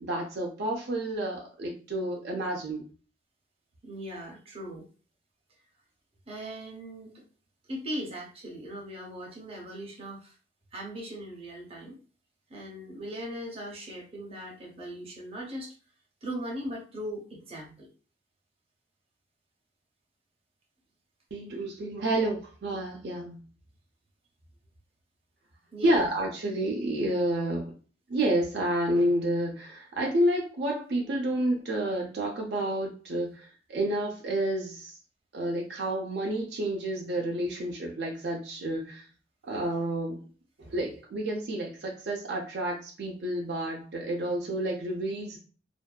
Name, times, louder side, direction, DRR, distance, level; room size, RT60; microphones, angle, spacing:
voice 1, 0.0-2.9 21.3-23.4 25.8-27.7 28.1-35.0 35.3-39.1 39.4-40.2 40.6-45.4, right 1 dB, 65° right, 0 dB, 0.5 m, -30 dB
voice 2, 3.8-4.9 6.3-7.2 7.7-10.3 10.7-12.0 12.5-15.7 16.2-17.9 25.7-26.1, equal, 35° right, -1 dB, 0.7 m, -39 dB
2.5 x 2.2 x 2.2 m, 0.37 s
head